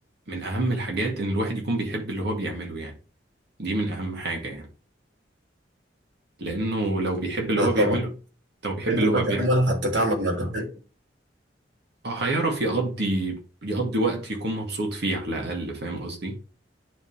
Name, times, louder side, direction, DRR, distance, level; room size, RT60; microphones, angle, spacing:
voice 1, 0.3-2.9 3.6-4.7 6.4-8.1 8.6-9.5 12.0-16.4, right 2 dB, 60° right, 2.3 m, -27 dB
voice 2, 7.6-8.0 8.9-10.7, equal, 80° right, 2.7 m, -23 dB
10.0 x 3.8 x 3.4 m
head